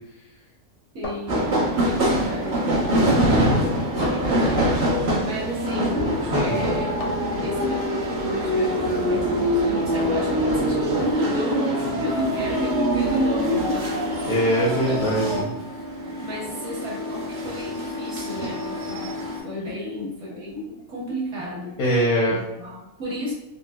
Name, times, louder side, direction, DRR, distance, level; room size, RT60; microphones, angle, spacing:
voice 1, 0.9-1.4 1.8-2.7 4.1-4.9 5.2-6.0 6.4-6.9 7.4-14.0 14.8-15.7 16.2-19.2 19.4-21.8 22.3-23.3, equal, 60° right, -3 dB, 1.2 m, -31 dB
sound 1, 1.0-1.9 4.0-4.5 7.0-7.4 10.0-10.4, left 2 dB, 50° left, 0.4 m, -37 dB
sound 2, 1.3-19.4, equal, 45° right, 0.8 m, -24 dB
voice 2, 3.5-3.8 6.3-6.6 14.2-15.5 21.8-22.4, equal, 90° left, -4 dB, 1.2 m, -22 dB
3.7 x 2.5 x 2.2 m, 0.96 s
omnidirectional pair, 1.5 m